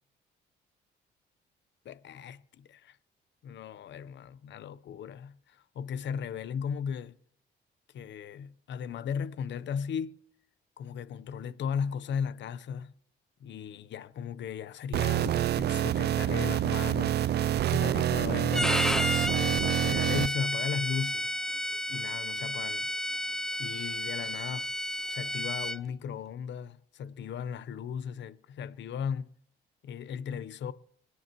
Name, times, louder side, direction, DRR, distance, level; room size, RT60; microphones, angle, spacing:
voice 1, 1.8-3.0 3.4-7.2 7.9-10.2 10.8-12.9 13.4-21.3 21.9-22.9 23.6-24.7 25.1-29.3 29.8-30.7, left 7 dB, 65° left, 0.8 m, -36 dB
sound 1, 14.9-20.3, right 11 dB, 55° right, 0.4 m, -27 dB
Bowed string instrument, 18.5-25.8, equal, 5° left, 0.5 m, -32 dB
27.0 x 9.6 x 3.0 m
cardioid pair, 90°, 20 cm